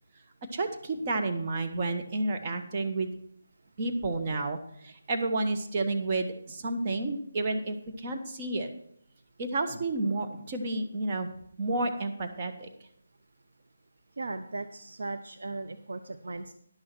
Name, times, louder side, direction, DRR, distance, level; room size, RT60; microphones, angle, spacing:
voice 1, 0.5-3.1 3.8-8.7 9.4-11.3 11.6-12.7, right 2 dB, 35° right, 4 dB, 1.2 m, -31 dB
voice 2, 14.2-16.5, right 3 dB, 70° right, 8 dB, 0.7 m, -37 dB
10.5 x 6.5 x 6.1 m, 0.67 s
figure-of-eight pair, 160°, 0 cm